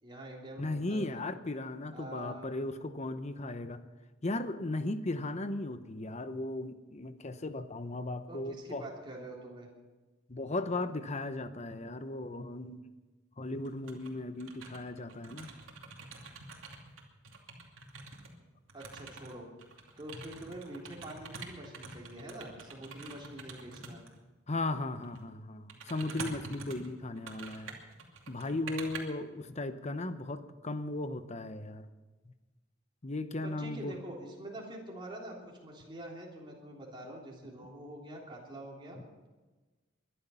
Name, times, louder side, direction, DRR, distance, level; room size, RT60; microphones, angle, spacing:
voice 1, 0.0-1.2 1.9-2.5 8.3-9.7 18.7-19.4 20.0-24.0 33.4-39.0, right 1 dB, 25° right, -2 dB, 3.3 m, -45 dB
voice 2, 0.6-3.8 4.2-8.9 10.3-12.8 13.4-15.5 24.5-27.8 28.3-31.9 33.0-34.0, left 2 dB, 35° left, 11 dB, 0.9 m, -36 dB
sound 1, 13.6-14.1 14.4-18.3 18.7-24.2 25.0-25.2 25.7-29.0, right 4 dB, 90° right, 2.7 m, -46 dB
22.0 x 11.5 x 5.7 m, 1.2 s
head